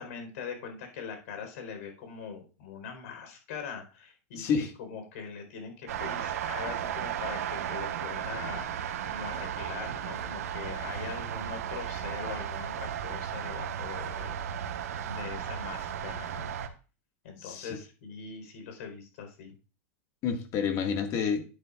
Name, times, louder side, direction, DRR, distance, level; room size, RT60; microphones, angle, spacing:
voice 1, 0.0-14.3 15.0-16.5 17.2-19.5, left 6 dB, 70° left, 5 dB, 4.2 m, -42 dB
voice 2, 4.3-4.7 17.4-17.8 20.2-21.4, left 6 dB, 40° left, 6 dB, 1.9 m, -29 dB
sound 1, 5.9-16.7, right 9 dB, 90° right, 1.3 m, -35 dB
11.5 x 9.6 x 2.5 m, 0.34 s
supercardioid pair, 140°, 8 cm